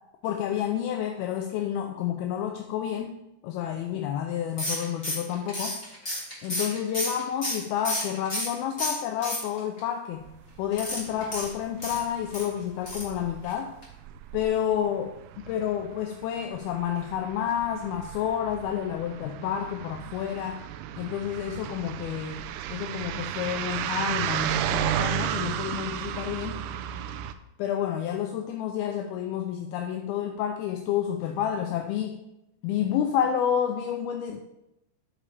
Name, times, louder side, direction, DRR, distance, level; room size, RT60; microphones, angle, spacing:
voice 1, 0.2-5.8 6.4-10.2 10.6-13.7 14.3-20.6 21.0-26.6 27.6-32.2 32.6-34.4, left 9 dB, 80° left, 4 dB, 2.3 m, -30 dB
sound 1, 4.6-8.5 8.8-9.8 10.7-12.5 12.8-13.2 13.4-13.5 13.8-13.9, left 1 dB, 20° left, 2.1 m, -32 dB
sound 2, 10.2-10.6 10.9-12.0 12.3-12.6 12.9-27.3, right 11 dB, 80° right, 2.5 m, -34 dB
10.5 x 7.8 x 3.4 m, 0.89 s
omnidirectional pair, 4.9 m